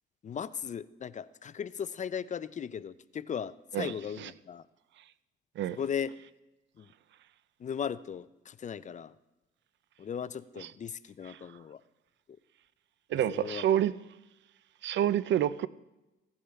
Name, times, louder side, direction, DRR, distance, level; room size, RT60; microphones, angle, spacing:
voice 1, 0.2-4.6 5.7-6.2 6.8-6.9 7.6-9.1 10.0-11.8 13.1-13.6, left 7 dB, 40° left, 0.5 m, -37 dB
voice 2, 13.1-13.9 14.8-15.7, right 11 dB, 65° right, 0.5 m, -27 dB
16.0 x 9.8 x 3.5 m
cardioid pair, 90°, 20 cm